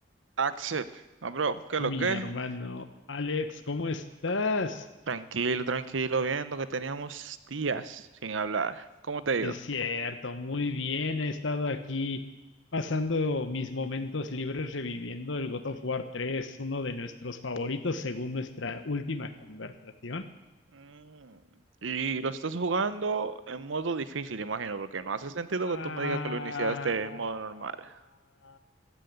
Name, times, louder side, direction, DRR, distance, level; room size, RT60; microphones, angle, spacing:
voice 1, 0.4-2.3 5.1-9.6 20.7-21.4 21.8-27.9, right 4 dB, 85° right, 14 dB, 0.8 m, -31 dB
voice 2, 1.8-4.9 9.4-12.2 12.7-20.3 25.7-27.8 28.4-28.6, left 3 dB, 80° left, 9 dB, 1.1 m, -33 dB
14.5 x 10.5 x 8.1 m, 1.0 s
head